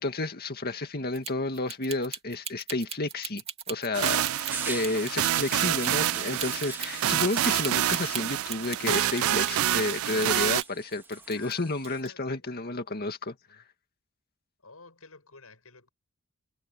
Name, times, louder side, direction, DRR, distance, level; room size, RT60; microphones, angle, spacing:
voice 1, 0.0-13.4, left 2 dB, 45° left, 2.1 m, -31 dB
sound 1, 1.1-9.9 10.2-11.6 11.8-12.1, right 7 dB, 30° right, 2.5 m, -38 dB
sound 2, 3.9-10.6, right 12 dB, 70° right, 0.4 m, -27 dB
sound 3, 4.5-12.0, right 2 dB, 10° right, 2.7 m, -43 dB
voice 2, 5.8-6.5 11.3-13.0 13.5-13.6 14.6-15.9, left 5 dB, 80° left, 8.0 m, -52 dB
head